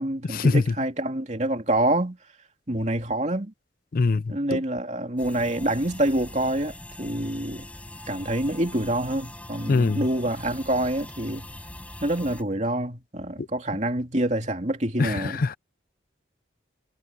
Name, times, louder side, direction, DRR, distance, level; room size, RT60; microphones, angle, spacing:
voice 1, 0.0-2.2 2.7-3.5 4.3-7.6 8.1-11.5 12.0-15.4, right 1 dB, 35° right, 2.9 m, -26 dB
voice 2, 3.9-4.6 9.7-10.1 15.0-15.6, left 3 dB, 45° left, 0.4 m, -23 dB
sound 1, 5.2-12.4, left 1 dB, 5° left, 5.4 m, -42 dB
head